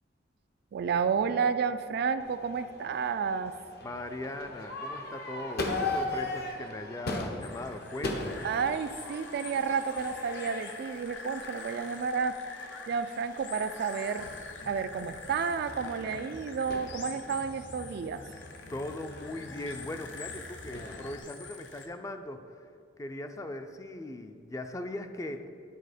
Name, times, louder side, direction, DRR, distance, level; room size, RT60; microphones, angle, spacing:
voice 1, 0.7-3.5 8.4-12.4 12.9-14.3 14.7-18.2, right 6 dB, 60° right, 11 dB, 0.3 m, -31 dB
Crowd / Fireworks, 2.2-21.2, left 2 dB, 60° left, 0.8 m, -40 dB
voice 2, 3.8-8.5 18.7-22.4 23.0-25.5, left 1 dB, 20° left, 7 dB, 0.4 m, -39 dB
sound 1, 7.4-21.9, left 4 dB, 90° left, 0.9 m, -46 dB
10.0 x 4.1 x 5.0 m, 2.3 s
head